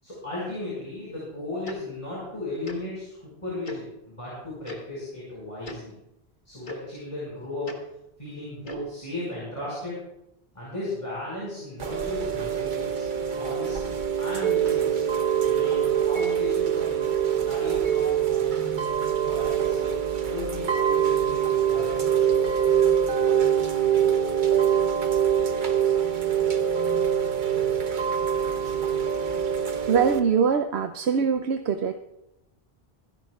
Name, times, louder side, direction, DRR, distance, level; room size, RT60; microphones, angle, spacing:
voice 1, 0.0-5.9 6.5-7.9 8.2-10.0 10.5-13.1 13.3-15.0 15.4-18.9 19.3-22.4, left 2 dB, 30° left, -7 dB, 5.4 m, -36 dB
Tick-tock, 1.6-1.8 2.6-2.8 3.6-3.8 4.6-4.8 5.6-5.8 6.6-6.8 7.6-7.8 8.6-8.8, left 2 dB, 50° left, 1.6 m, -38 dB
Chime / Rain, 11.8-30.2, right 9 dB, 50° right, 1.0 m, -24 dB
voice 2, 29.9-31.9, right 6 dB, 85° right, 8 dB, 0.9 m, -23 dB
26.0 x 11.0 x 2.3 m, 0.87 s
omnidirectional pair, 1.1 m